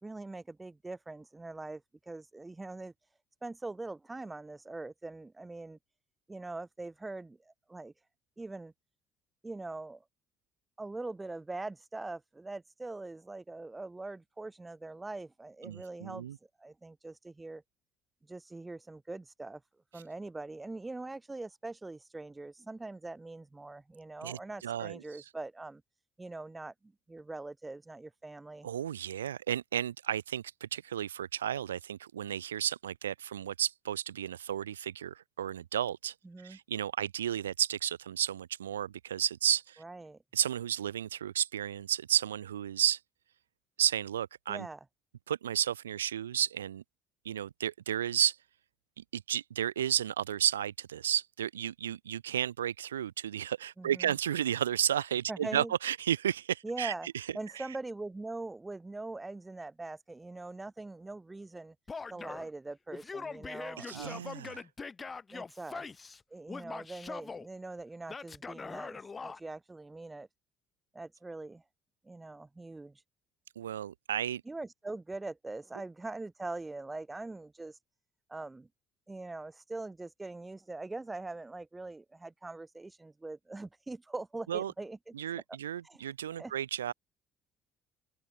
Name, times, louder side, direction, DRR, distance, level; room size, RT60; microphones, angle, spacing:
voice 1, 0.0-2.9 3.4-5.8 6.3-7.9 8.4-8.7 9.4-10.0 10.8-16.3 16.6-17.6 18.3-19.6 19.9-25.8 26.2-28.7 36.2-36.6 39.8-40.2 44.5-44.8 53.8-54.2 55.3-55.7 56.6-57.1 57.3-61.8 62.1-64.2 65.3-65.9 66.3-70.3 70.9-71.6 72.0-73.0 74.4-77.8 78.3-78.7 79.1-85.1 85.8-86.0 86.4-86.5, right 2 dB, 20° right, 2.6 m, -42 dB
voice 2, 15.6-16.4 24.2-25.0 28.6-36.1 36.4-39.8 40.3-43.0 43.8-44.7 45.3-46.8 47.3-48.4 49.0-57.3 63.8-64.7 73.6-74.4 84.5-84.7 85.1-86.9, right 10 dB, 85° right, 0.4 m, -33 dB
Male speech man speaking / Yell, 61.9-62.5 62.9-66.2 66.5-67.5 68.1-69.4, left 4 dB, 30° left, 1.7 m, -42 dB
open air
hypercardioid pair, 55°, 0 cm